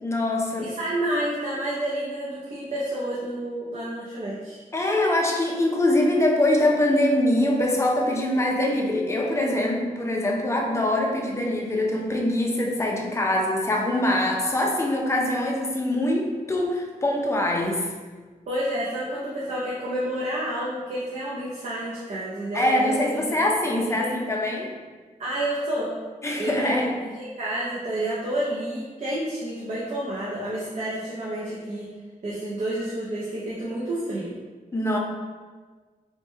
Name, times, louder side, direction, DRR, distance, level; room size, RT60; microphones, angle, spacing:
voice 1, 0.0-0.7 4.7-17.9 22.5-24.7 26.2-26.9 34.7-35.0, left 1 dB, 20° left, -1 dB, 0.4 m, -23 dB
voice 2, 0.6-4.6 18.5-23.4 23.6-24.2 25.2-25.9 26.3-31.9 32.2-34.4, right 1 dB, 50° right, -7 dB, 0.5 m, -30 dB
3.1 x 2.1 x 3.1 m, 1.4 s
wide cardioid pair, 175°, 15 cm